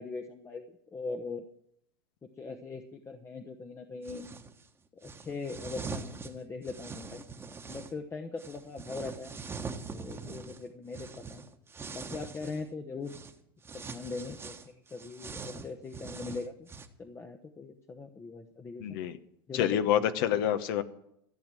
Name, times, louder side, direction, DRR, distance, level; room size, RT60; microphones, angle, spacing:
voice 1, 0.0-1.4 2.4-4.3 5.0-7.2 7.7-9.4 9.9-11.4 11.9-13.1 13.7-16.7 17.0-19.0 19.5-20.1, left 4 dB, 20° left, 4 dB, 1.0 m, -41 dB
some cloth passes, 4.0-4.5 5.0-7.9 8.4-12.7 13.1-13.3 13.6-16.9, right 4 dB, 20° right, 1.3 m, -43 dB
voice 2, 18.8-19.2 19.5-20.8, left 10 dB, 65° left, 11 dB, 1.1 m, -27 dB
14.5 x 7.3 x 7.6 m, 0.74 s
hypercardioid pair, 100°, 12 cm